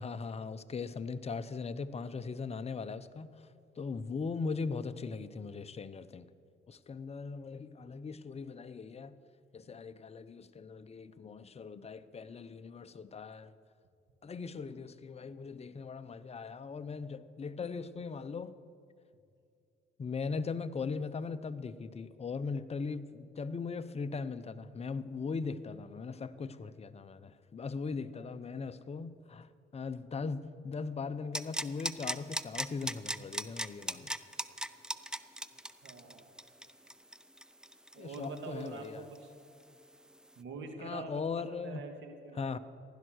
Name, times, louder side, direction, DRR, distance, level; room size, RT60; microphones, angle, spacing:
voice 1, 0.0-3.5 3.8-6.3 6.7-9.2 9.5-13.5 14.2-18.6 20.0-34.2 38.0-39.1 40.8-41.8 42.4-42.6, left 4 dB, 30° left, 0.7 m, -39 dB
sound 1, 31.3-38.9 39.1-39.2, right 1 dB, 5° right, 0.5 m, -37 dB
voice 2, 35.8-36.3 37.9-39.3 40.4-42.6, right 4 dB, 70° right, 2.0 m, -45 dB
15.5 x 11.5 x 6.4 m
cardioid pair, 90°, 20 cm